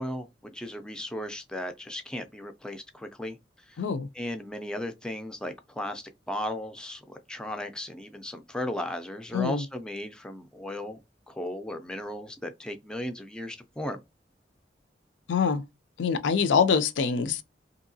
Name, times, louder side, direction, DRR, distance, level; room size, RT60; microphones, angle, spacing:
voice 1, 0.0-3.4 3.7-3.8 4.1-11.0 11.3-14.0, left 1 dB, 5° left, 0.3 m, -36 dB
voice 2, 3.8-4.1 9.3-9.6 15.3-15.6 16.0-17.4, left 6 dB, 85° left, 0.4 m, -24 dB
2.8 x 2.7 x 2.6 m
head